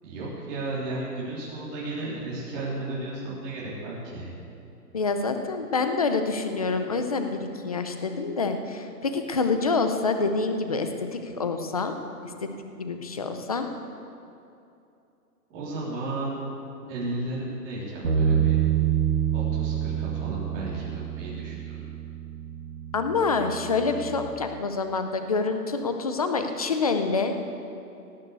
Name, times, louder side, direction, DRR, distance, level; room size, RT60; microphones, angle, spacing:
voice 1, 0.0-4.3 15.5-16.3 16.9-18.6 19.3-21.8, right 2 dB, 25° right, -6 dB, 3.4 m, -34 dB
voice 2, 4.9-12.0 12.4-12.5 12.8-13.7 22.9-27.3, left 4 dB, 25° left, 7 dB, 0.5 m, -27 dB
Bass guitar, 18.0-24.3, right 9 dB, 65° right, 2.0 m, -27 dB
18.0 x 6.7 x 8.1 m, 2.7 s
hypercardioid pair, 160°, 47 cm